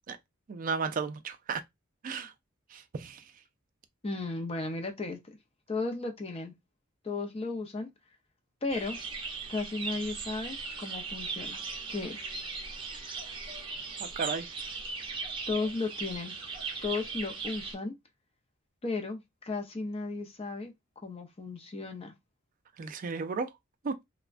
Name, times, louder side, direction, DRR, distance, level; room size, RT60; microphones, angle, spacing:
voice 1, 0.5-1.6 2.0-2.3 2.7-3.2 14.0-14.5 22.8-23.5 23.8-23.9, right 5 dB, 40° right, 0.3 m, -34 dB
voice 2, 4.0-5.2 5.7-6.5 7.0-7.9 8.6-9.0 9.5-11.6 11.9-12.3 15.5-16.3 16.8-17.9 18.8-19.2 19.5-20.7 21.0-22.1, left 3 dB, 30° left, 0.5 m, -34 dB
sound 1, 8.7-17.8, right 4 dB, 25° right, 0.7 m, -38 dB
3.4 x 2.0 x 2.4 m
head